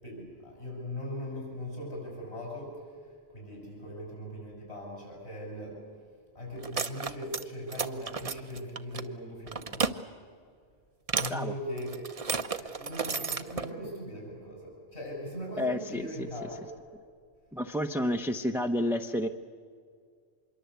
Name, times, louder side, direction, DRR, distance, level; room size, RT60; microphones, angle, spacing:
voice 1, 0.0-5.8 6.3-9.9 11.2-12.0 12.5-16.6, equal, 65° left, -2 dB, 7.5 m, -40 dB
sound 1, 6.6-7.4 7.7-9.0 9.5-9.9 11.1-11.4 11.8-13.7, right 5 dB, 35° right, 0.8 m, -32 dB
voice 2, 15.6-16.5 17.5-19.3, left 1 dB, ahead, 6 dB, 0.7 m, -30 dB
26.0 x 22.5 x 8.2 m, 2.1 s
omnidirectional pair, 1.2 m